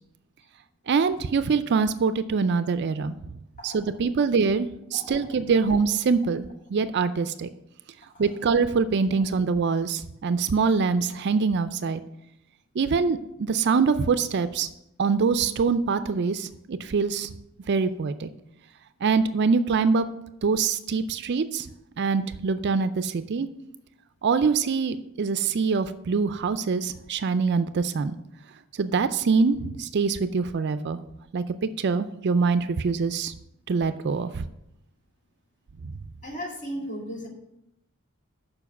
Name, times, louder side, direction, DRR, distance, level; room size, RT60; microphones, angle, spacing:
voice 1, 0.9-3.1 3.6-7.5 8.2-12.0 12.8-14.7 15.0-17.3 17.7-18.3 19.0-20.1 20.4-21.7 22.0-23.5 24.2-28.2 28.8-31.0 31.3-33.3 33.7-34.4 35.8-35.9, right 5 dB, 50° right, 12 dB, 0.4 m, -24 dB
voice 2, 4.9-5.3 36.2-37.3, equal, 35° left, -1 dB, 2.1 m, -35 dB
7.1 x 5.2 x 7.0 m, 0.82 s
head